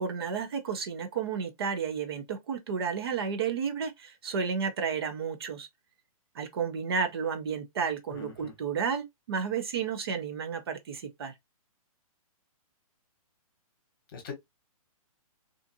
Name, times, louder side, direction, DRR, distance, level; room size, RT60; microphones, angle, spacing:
voice 1, 0.0-5.7 6.3-11.3, right 6 dB, 40° right, 0.5 m, -32 dB
voice 2, 8.1-8.5 14.1-14.3, left 6 dB, 35° left, 1.0 m, -41 dB
2.5 x 2.5 x 2.5 m
hypercardioid pair, 165°, 19 cm